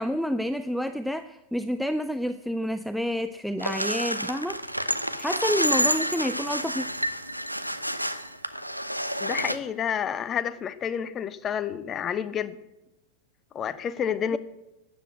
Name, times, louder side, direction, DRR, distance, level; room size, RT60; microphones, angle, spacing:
voice 1, 0.0-6.9, equal, ahead, 11 dB, 0.5 m, -29 dB
sound 1, 3.6-9.6, equal, 90° right, 0.8 m, -29 dB
voice 2, 9.2-12.6 13.5-14.4, left 8 dB, 25° left, 15 dB, 0.9 m, -29 dB
13.0 x 10.0 x 8.1 m, 0.96 s
figure-of-eight pair, 90°, 0 cm